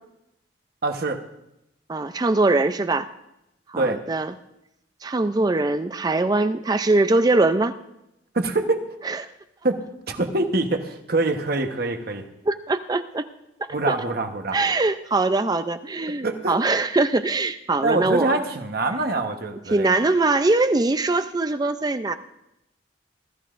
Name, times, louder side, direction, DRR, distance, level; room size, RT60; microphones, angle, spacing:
voice 1, 0.8-1.2 3.8-4.0 8.3-8.8 9.6-9.8 10.1-12.2 13.7-14.6 16.2-16.6 17.8-19.9, right 2 dB, 55° right, 5 dB, 1.1 m, -24 dB
voice 2, 1.9-3.1 3.7-4.3 5.0-7.7 9.0-9.2 12.4-13.3 13.9-14.0 14.5-18.4 19.7-22.1, right 2 dB, 20° right, 10 dB, 0.4 m, -22 dB
20.0 x 13.0 x 2.5 m, 0.86 s
head